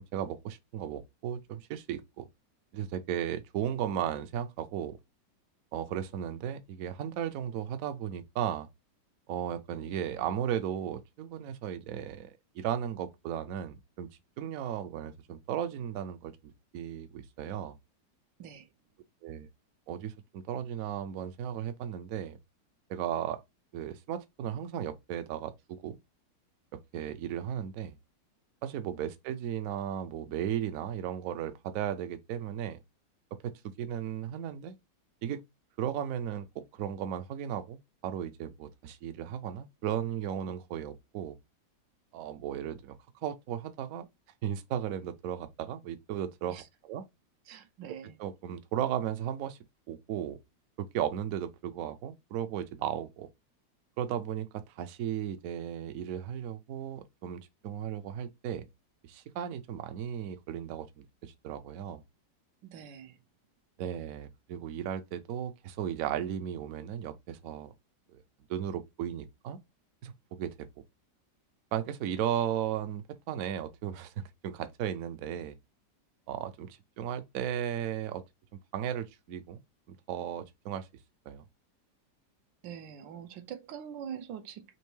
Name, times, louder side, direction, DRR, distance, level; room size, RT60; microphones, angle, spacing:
voice 1, 0.0-2.3 2.7-5.0 5.7-8.7 9.3-14.1 14.4-17.8 19.2-19.5 19.9-22.4 22.9-23.4 23.7-26.0 26.7-27.9 28.6-32.8 33.3-34.8 35.2-35.4 35.8-41.4 42.1-44.1 44.4-47.0 48.2-49.6 49.9-50.4 50.8-53.3 54.0-54.5 54.8-58.7 59.1-62.0 63.8-67.7 68.1-68.2 68.5-69.6 70.0-70.7 71.7-75.6 76.3-78.2 78.7-79.6 80.1-80.9 81.3-81.4, right 9 dB, 65° right, 0.9 m, -35 dB
voice 2, 47.5-48.2 62.6-63.2 82.6-84.8, right 8 dB, 85° right, 1.4 m, -44 dB
4.4 x 2.9 x 3.1 m
omnidirectional pair, 1.9 m